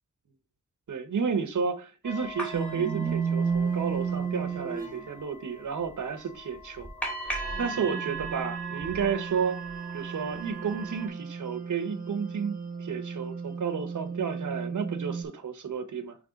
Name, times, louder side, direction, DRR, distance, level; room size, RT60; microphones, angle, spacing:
voice 1, 0.9-6.9 7.2-9.6 9.9-16.2, right 6 dB, 90° right, 0.9 m, -32 dB
sound 1, 2.0-11.1, right 3 dB, 5° left, 2.3 m, -39 dB
sound 2, 2.5-5.0 7.3-15.2, right 6 dB, 30° right, 1.2 m, -33 dB
6.2 x 3.3 x 5.1 m
wide cardioid pair, 90°, 30 cm